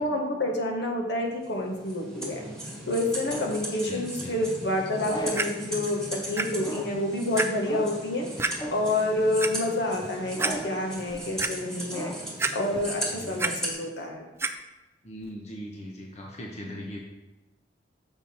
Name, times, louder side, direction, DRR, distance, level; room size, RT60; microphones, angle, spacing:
voice 1, 0.0-2.4 2.9-6.0 6.3-8.3 8.7-10.4 10.6-12.1 12.5-14.3, left 1 dB, 65° left, 1 dB, 1.3 m, -28 dB
sound 1, 1.4-13.7, right 1 dB, 5° left, 1.8 m, -37 dB
sound 2, 1.6-3.7 5.0-5.6 6.6-7.1 7.6-8.1 8.6-9.0 10.3-10.9 11.8-12.4, equal, 25° left, 0.7 m, -38 dB
voice 2, 3.9-4.5 13.1-13.5 15.0-17.0, equal, 40° left, 0 dB, 0.9 m, -39 dB
Clock, 5.3-5.4 6.4-6.5 6.9-7.0 7.4-7.5 8.4-8.5 9.2-9.5 10.0-10.1 10.4-10.5 11.0-11.5 12.4-12.9 13.2-13.5 14.4-14.5 15.2-15.3, right 3 dB, 15° right, 0.4 m, -28 dB
6.9 x 5.6 x 4.4 m, 1.1 s
head